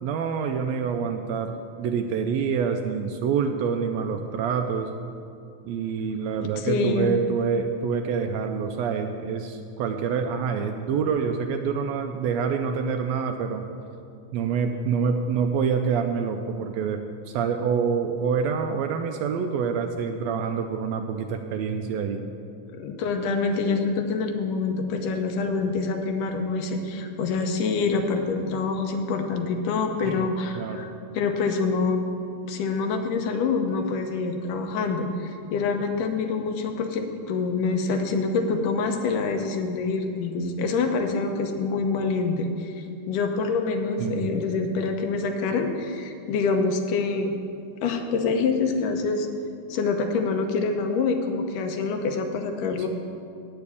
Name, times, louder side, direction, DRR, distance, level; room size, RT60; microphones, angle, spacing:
voice 1, 0.0-4.9 5.6-13.6 14.3-22.3 30.0-30.3 30.5-30.9 44.0-44.3, right 6 dB, 90° right, 5 dB, 1.5 m, -26 dB
voice 2, 6.6-7.2 22.7-32.1 32.4-47.3 47.8-49.3 49.7-52.9, left 4 dB, 90° left, 4 dB, 2.5 m, -26 dB
8.7 x 6.9 x 8.3 m, 2.4 s
omnidirectional pair, 3.6 m